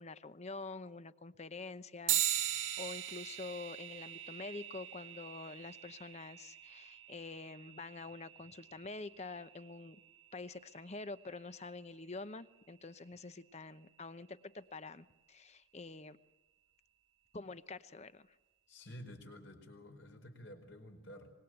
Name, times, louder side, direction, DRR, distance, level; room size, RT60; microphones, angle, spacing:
voice 1, 0.0-10.0 10.3-16.2 17.3-18.3, left 3 dB, 35° left, 14 dB, 0.8 m, -47 dB
sound 1, 2.1-11.9, right 11 dB, 75° right, 1.6 m, -41 dB
voice 2, 18.7-21.3, equal, 65° left, 5 dB, 4.8 m, -51 dB
25.0 x 21.0 x 7.9 m, 1.0 s
head